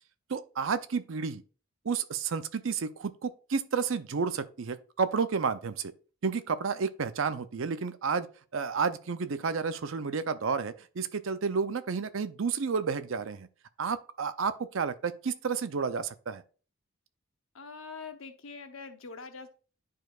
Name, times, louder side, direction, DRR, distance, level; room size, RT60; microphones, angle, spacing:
voice 1, 0.3-1.4 1.8-5.9 6.2-8.3 8.5-13.5 13.8-16.4, right 5 dB, 65° right, 0.5 m, -31 dB
voice 2, 17.5-19.5, left 4 dB, 75° left, 0.9 m, -44 dB
10.0 x 4.7 x 2.4 m
head